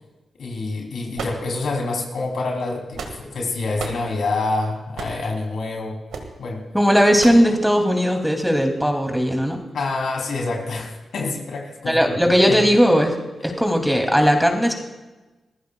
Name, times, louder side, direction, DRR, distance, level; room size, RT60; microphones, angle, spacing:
voice 1, 0.4-6.0 6.4-6.6 9.7-12.2 12.5-12.6 13.5-13.6, left 3 dB, 75° left, 0 dB, 3.3 m, -27 dB
sound 1, 1.1-1.9 2.7-3.4 3.8-4.1 4.9-5.3 6.1-6.3 7.2-7.5, right 5 dB, 85° right, 1.9 m, -33 dB
voice 2, 6.7-9.6 11.9-13.2 13.4-14.7, equal, ahead, 3 dB, 2.8 m, -18 dB
26.0 x 15.0 x 2.4 m, 1.1 s
supercardioid pair, 50°, 0 cm